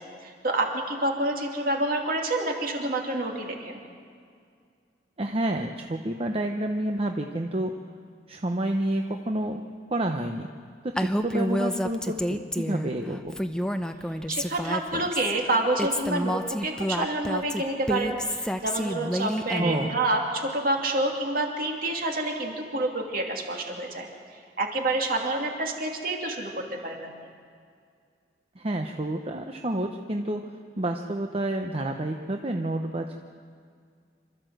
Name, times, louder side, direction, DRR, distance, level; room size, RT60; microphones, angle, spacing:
voice 1, 0.0-3.8 14.3-24.1 24.6-27.1, right 2 dB, 50° right, 1 dB, 2.7 m, -28 dB
voice 2, 5.2-7.7 8.3-9.6 9.9-10.5 10.8-13.4 19.6-19.9 28.6-30.4 30.8-33.1, right 1 dB, 30° right, 4 dB, 0.8 m, -29 dB
Female speech woman speaking, 11.0-12.9 13.3-15.3 15.8-19.9, equal, 5° left, 0.7 m, -29 dB
27.0 x 13.5 x 7.8 m, 2.1 s
head